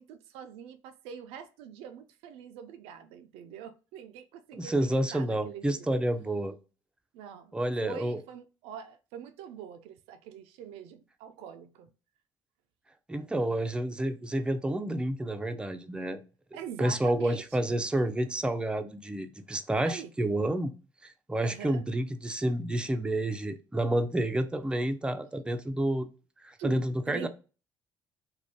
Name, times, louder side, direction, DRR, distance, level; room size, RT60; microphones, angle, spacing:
voice 1, 0.0-5.9 7.1-7.6 7.8-11.9 16.5-17.7 19.8-20.1 21.4-21.8 26.6-27.3, right 8 dB, 80° right, 0.4 m, -44 dB
voice 2, 4.5-6.6 7.5-8.2 13.1-16.2 16.8-20.7 21.0-26.1 26.4-27.3, right 1 dB, 10° right, 0.4 m, -29 dB
2.5 x 2.2 x 3.4 m
hypercardioid pair, 60°, 10 cm